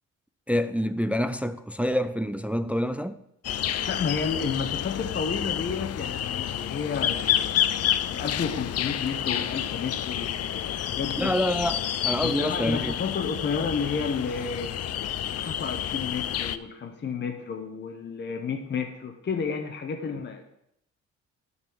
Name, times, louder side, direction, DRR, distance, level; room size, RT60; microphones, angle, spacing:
voice 1, 0.5-3.2 11.2-12.9, equal, 5° right, 0.4 m, -27 dB
sound 1, 3.4-16.6, left 10 dB, 55° left, 0.5 m, -29 dB
voice 2, 3.9-7.6 8.1-11.3 12.2-14.7 15.3-20.4, left 5 dB, 35° left, 0.9 m, -31 dB
10.5 x 4.1 x 6.3 m
cardioid pair, 90°, 30 cm